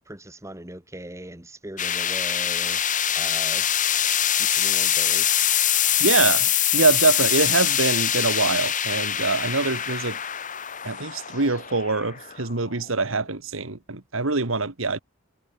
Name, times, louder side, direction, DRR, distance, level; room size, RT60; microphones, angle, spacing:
voice 1, 0.1-2.8 3.1-3.7 4.4-5.4, right 1 dB, 15° right, 2.1 m, -39 dB
sound 1, 1.8-12.9, left 10 dB, 40° left, 2.6 m, -24 dB
voice 2, 6.0-10.2 10.8-15.0, right 3 dB, 75° right, 1.8 m, -24 dB
head